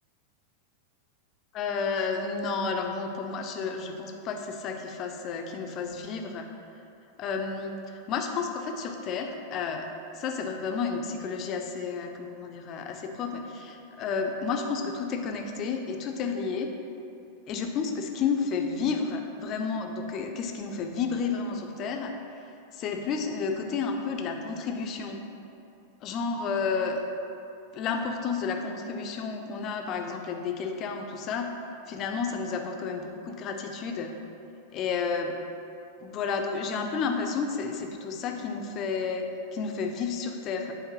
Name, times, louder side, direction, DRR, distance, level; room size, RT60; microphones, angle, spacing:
voice 1, 1.5-6.5 7.2-9.9 10.1-16.7 17.5-22.1 22.7-25.2 26.0-27.0 27.7-31.5 31.9-34.1 34.7-35.3 36.0-40.7, left 5 dB, 35° left, 4 dB, 0.4 m, -31 dB
5.8 x 2.6 x 3.0 m, 2.7 s
figure-of-eight pair, 90°, 0 cm